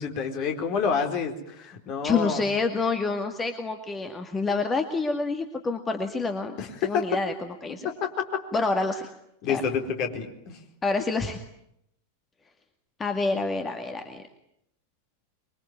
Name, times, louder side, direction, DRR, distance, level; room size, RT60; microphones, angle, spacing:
voice 1, 0.0-2.4 6.6-7.1 7.8-8.3 9.4-10.6, left 6 dB, 40° left, 5 dB, 4.3 m, -28 dB
voice 2, 2.0-6.6 6.8-7.9 8.5-9.1 9.5-9.6 10.8-11.4 13.0-14.2, left 3 dB, 15° left, 7 dB, 2.2 m, -27 dB
25.5 x 23.5 x 9.5 m, 0.77 s
figure-of-eight pair, 90°, 0 cm